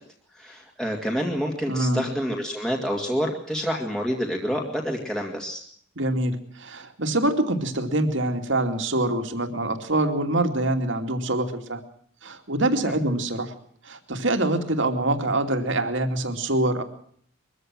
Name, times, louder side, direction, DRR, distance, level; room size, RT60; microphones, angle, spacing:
voice 1, 0.3-5.6 12.8-12.9, equal, 5° left, -1 dB, 2.3 m, -28 dB
voice 2, 1.7-2.0 6.0-11.8 12.2-13.5 13.8-16.8, right 1 dB, 60° right, 6 dB, 2.7 m, -25 dB
23.0 x 15.0 x 7.7 m, 0.62 s
head